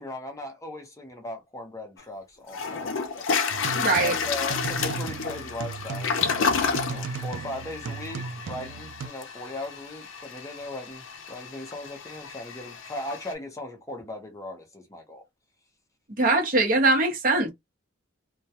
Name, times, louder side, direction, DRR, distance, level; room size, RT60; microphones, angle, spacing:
voice 1, 0.0-3.7 4.0-6.5 6.9-15.2, left 1 dB, 15° left, 0.6 m, -38 dB
Toilet flush, 2.0-2.1 2.5-13.3, left 5 dB, 70° left, 0.5 m, -31 dB
sound 1, 3.5-9.1, right 4 dB, 65° right, 0.3 m, -36 dB
voice 2, 3.7-4.1 16.2-17.5, right 2 dB, 45° right, 0.8 m, -22 dB
2.2 x 2.1 x 2.8 m
head